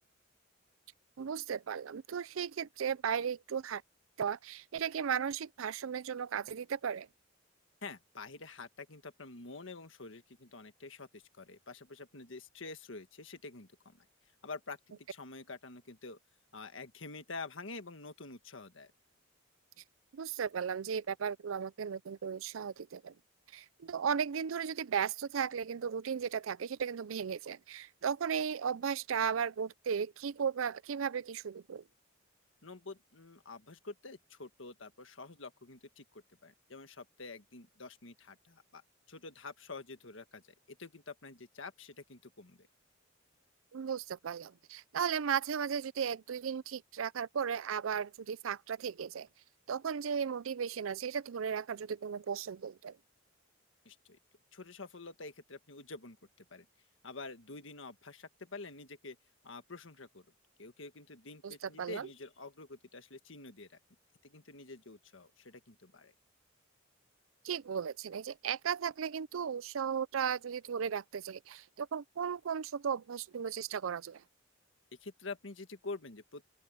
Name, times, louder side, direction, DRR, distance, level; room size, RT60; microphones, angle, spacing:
voice 1, 1.2-3.8 4.2-7.1 20.1-23.1 23.5-31.8 43.7-49.3 49.7-53.0 61.4-62.1 67.4-74.2, right 7 dB, 90° right, 0.5 m, -35 dB
voice 2, 7.8-14.0 14.4-16.2 16.5-18.9 32.6-38.8 39.1-40.4 40.7-42.7 53.8-54.2 54.5-56.2 56.5-56.6 57.0-59.2 59.4-60.2 60.6-63.7 64.2-66.1 75.0-76.4, left 3 dB, 70° left, 1.7 m, -47 dB
open air
head